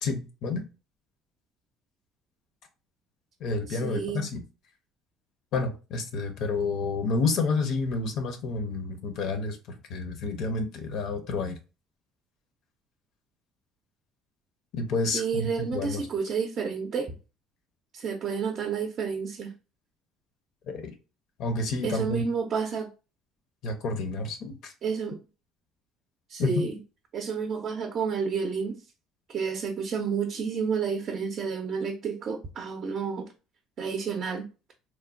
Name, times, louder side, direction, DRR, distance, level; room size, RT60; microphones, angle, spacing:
voice 1, 0.0-0.7 3.4-4.4 5.5-9.6 9.9-11.6 14.7-16.0 20.7-20.9 21.4-22.2 23.6-24.7 26.4-26.6, left 3 dB, 70° left, 0.6 m, -29 dB
voice 2, 3.7-4.3 15.1-17.1 17.9-19.5 21.8-22.9 24.8-25.2 26.3-26.8 27.1-28.8 29.3-33.3 33.8-34.5, right 6 dB, 50° right, 0.4 m, -30 dB
3.1 x 2.1 x 2.4 m
supercardioid pair, 95°, 0 cm